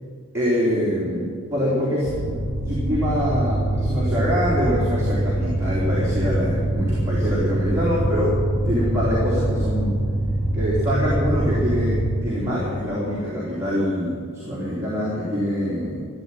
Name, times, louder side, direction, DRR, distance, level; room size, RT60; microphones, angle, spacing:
voice 1, 0.3-2.4 2.7-8.4 8.6-10.0 10.5-16.0, equal, 10° right, -8 dB, 3.4 m, -24 dB
sound 1, 2.0-12.0, right 1 dB, 30° left, 3.4 m, -24 dB
14.0 x 9.1 x 9.8 m, 2.1 s
head